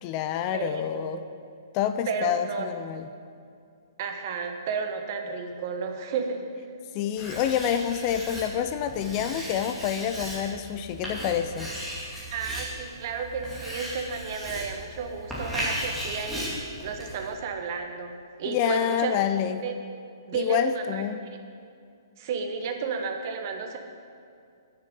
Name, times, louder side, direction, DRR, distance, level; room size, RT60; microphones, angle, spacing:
voice 1, 0.0-1.2 1.7-3.1 6.9-11.7 18.5-19.6 20.3-21.2, left 9 dB, 30° left, 10 dB, 0.4 m, -27 dB
voice 2, 0.5-1.0 2.1-2.7 4.0-6.5 12.3-16.4 16.8-18.1 18.4-19.1 19.6-19.7 20.3-21.0 22.2-23.8, right 5 dB, 45° right, 5 dB, 1.3 m, -32 dB
Writing, 7.2-17.3, equal, ahead, 2.6 m, -36 dB
9.0 x 6.7 x 8.4 m, 2.4 s
hypercardioid pair, 145°, 2 cm